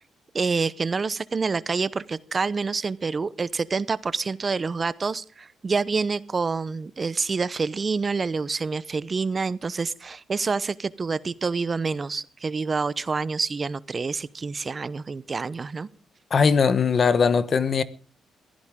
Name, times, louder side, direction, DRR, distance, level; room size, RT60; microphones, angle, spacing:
voice 1, 0.3-15.9, right 4 dB, 35° right, 0.8 m, -27 dB
voice 2, 16.3-17.8, left 5 dB, 45° left, 1.2 m, -20 dB
22.0 x 15.5 x 3.7 m
cardioid pair, 90°, 0 cm